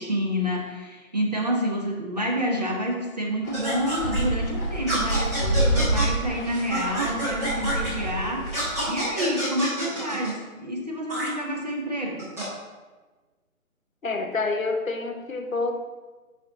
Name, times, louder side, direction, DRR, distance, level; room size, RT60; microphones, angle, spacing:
voice 1, 0.0-12.2, equal, 30° right, -1 dB, 0.7 m, -28 dB
sound 1, 3.4-8.9, right 1 dB, 15° left, 1.1 m, -28 dB
sound 2, 3.5-4.2 4.9-6.1 6.7-7.9 8.5-10.3 11.1-11.3 12.2-12.4, right 1 dB, 10° right, 1.0 m, -28 dB
voice 2, 14.0-15.9, left 3 dB, 70° left, 5 dB, 0.9 m, -28 dB
5.7 x 5.0 x 3.7 m, 1.3 s
figure-of-eight pair, 150°, 43 cm